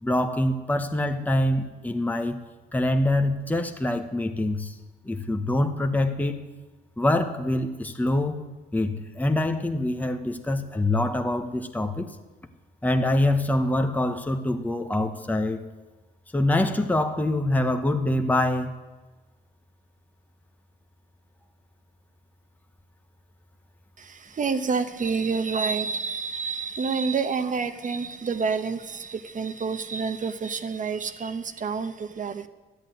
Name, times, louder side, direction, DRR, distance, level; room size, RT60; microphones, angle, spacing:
voice 1, 0.0-2.4 2.7-4.8 5.0-6.5 7.0-8.4 8.7-12.2 12.8-15.6 16.3-18.7, left 1 dB, 10° left, 6 dB, 1.2 m, -25 dB
voice 2, 24.0-32.5, right 5 dB, 40° right, 10 dB, 1.1 m, -28 dB
13.0 x 8.6 x 9.3 m, 1.2 s
cardioid pair, 90°, 20 cm